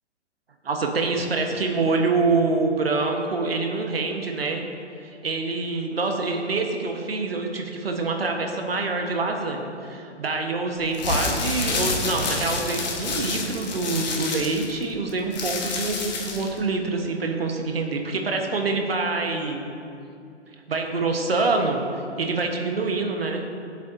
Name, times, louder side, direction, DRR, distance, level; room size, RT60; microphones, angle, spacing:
voice 1, 0.6-4.6 5.0-19.7 20.7-21.8 22.2-23.4, right 3 dB, 55° right, 3 dB, 1.4 m, -26 dB
sound 1, 10.8-16.6, left 3 dB, 35° left, 1.6 m, -28 dB
19.5 x 8.2 x 2.8 m, 2.6 s
figure-of-eight pair, 135°, 35 cm